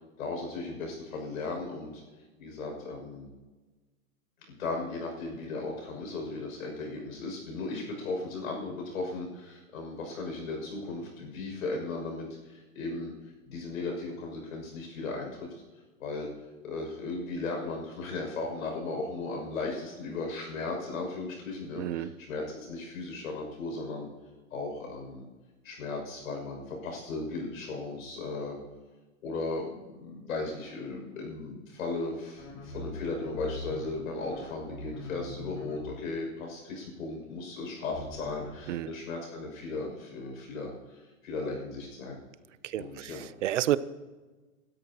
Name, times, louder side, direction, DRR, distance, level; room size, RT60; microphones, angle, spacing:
voice 1, 0.2-1.9 2.4-3.3 4.6-13.1 13.5-15.5 16.0-16.3 16.6-24.1 24.5-25.3 25.6-28.6 29.2-42.2 42.7-43.2, left 3 dB, 70° left, 1 dB, 6.5 m, -36 dB
voice 2, 21.8-22.1 38.7-38.9 42.6-43.8, right 13 dB, 55° right, 16 dB, 0.8 m, -30 dB
sound 1, 32.4-35.9 37.9-38.6, left 2 dB, 40° left, 5.1 m, -42 dB
27.5 x 13.0 x 2.9 m, 1.3 s
hypercardioid pair, 165°, 43 cm